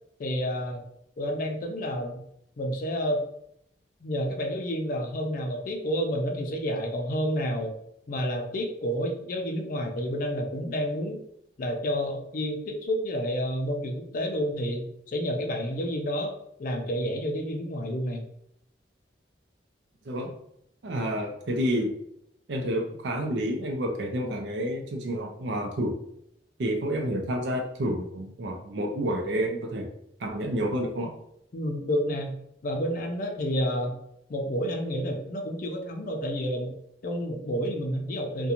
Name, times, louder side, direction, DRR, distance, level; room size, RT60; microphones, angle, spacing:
voice 1, 0.2-0.8 1.2-2.2 2.6-3.3 4.0-7.8 8.1-11.2 11.6-16.3 16.6-18.2 31.5-32.3 32.6-34.0 34.3-36.7 37.0-38.5, equal, 50° left, 3 dB, 0.4 m, -29 dB
voice 2, 20.8-21.9 22.5-25.9 26.6-29.9 30.2-31.1, equal, 85° right, 2 dB, 0.5 m, -29 dB
2.5 x 2.2 x 2.8 m, 0.74 s
head